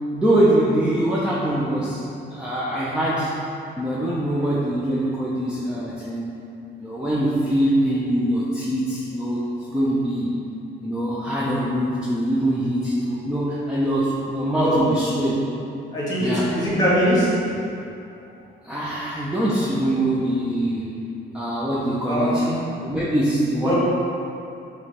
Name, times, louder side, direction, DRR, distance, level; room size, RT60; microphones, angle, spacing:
voice 1, 0.1-2.0 2.3-3.3 3.7-6.4 6.8-10.4 10.8-15.4 16.2-16.5 18.6-20.9 21.3-22.5 22.8-23.7, right 1 dB, 5° right, -8 dB, 0.4 m, -23 dB
voice 2, 15.9-17.3 22.1-22.6 23.6-23.7, equal, 20° left, -8 dB, 1.2 m, -21 dB
5.0 x 3.0 x 2.9 m, 2.6 s
cardioid pair, 150°, 19 cm